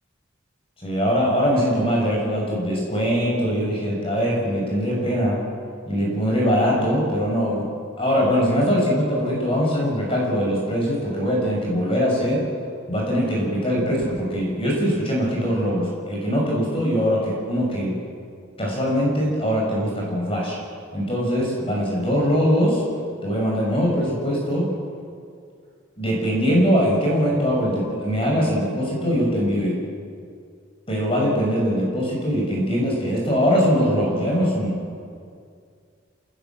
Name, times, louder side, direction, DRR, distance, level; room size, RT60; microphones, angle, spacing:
voice 1, 0.8-5.4 5.9-7.6 8.0-12.4 12.9-18.0 18.6-20.6 20.9-22.8 23.2-24.7 26.0-29.8 30.9-34.8, equal, 30° left, -2 dB, 6.8 m, -22 dB
28.0 x 19.0 x 7.6 m, 2.2 s
head